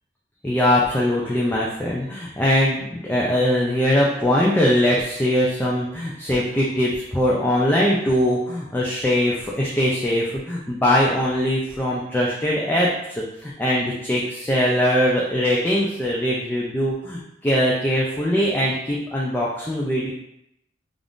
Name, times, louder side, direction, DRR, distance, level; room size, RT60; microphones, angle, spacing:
voice 1, 0.4-12.9 13.4-20.1, equal, 10° left, -5 dB, 0.4 m, -21 dB
2.5 x 2.4 x 3.5 m, 0.81 s
head